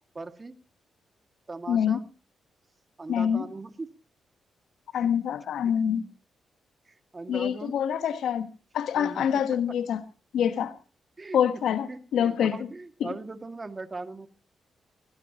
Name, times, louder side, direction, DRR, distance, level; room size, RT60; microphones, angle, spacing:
voice 1, 0.2-0.5 1.5-2.0 3.0-3.9 4.9-5.1 6.9-7.8 8.9-9.4 9.7-9.8 11.2-11.6 11.9-14.3, right 3 dB, 35° right, 2.1 m, -39 dB
voice 2, 1.7-2.0 3.1-3.5 4.9-6.1 7.3-8.5 8.7-10.0 10.3-10.7 11.3-12.7 13.0-13.2, left 8 dB, 75° left, 1.2 m, -26 dB
20.5 x 17.5 x 3.0 m
hypercardioid pair, 45°, 0 cm